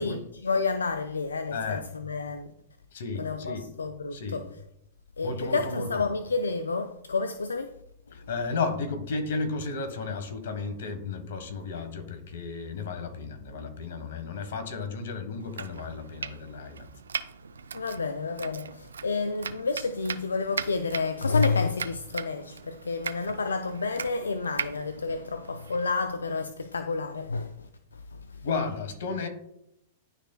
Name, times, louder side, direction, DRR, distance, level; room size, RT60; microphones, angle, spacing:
voice 1, 0.0-2.5 3.2-4.5 5.2-7.7 17.7-28.5, left 4 dB, 90° left, 0.3 m, -30 dB
voice 2, 1.5-1.9 2.9-3.7 4.1-4.4 5.2-6.1 8.1-16.9 28.4-29.3, left 4 dB, 70° left, 1.3 m, -33 dB
Domestic sounds home sounds, 15.4-26.0, right 6 dB, 85° right, 0.4 m, -39 dB
11.5 x 4.1 x 2.2 m
hypercardioid pair, 105°, 0 cm